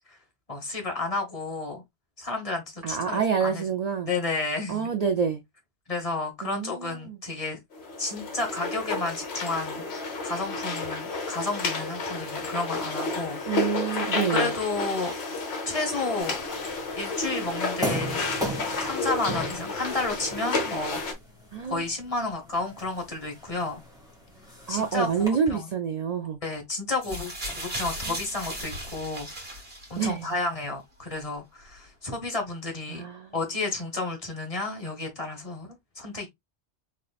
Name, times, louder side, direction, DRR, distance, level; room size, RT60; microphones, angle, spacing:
voice 1, 0.5-1.8 2.2-3.6 4.1-4.9 5.9-7.6 8.0-13.8 14.3-15.1 15.7-16.4 17.0-18.2 18.8-21.0 21.7-23.8 24.7-25.7 26.4-29.6 29.9-33.0 33.3-36.3, left 3 dB, 30° left, 1.1 m, -31 dB
voice 2, 2.8-4.1 4.7-5.4 6.4-7.2 13.5-14.5 21.5-21.8 24.7-26.4 30.0-30.3 32.9-33.3, right 6 dB, 70° right, 0.4 m, -27 dB
sound 1, 7.7-21.1, left 3 dB, 60° left, 1.2 m, -31 dB
sound 2, 16.2-25.3, right 1 dB, 5° right, 1.6 m, -38 dB
sound 3, 27.0-30.3 31.2-31.3, right 1 dB, 55° right, 2.1 m, -36 dB
3.7 x 3.3 x 2.3 m
omnidirectional pair, 1.3 m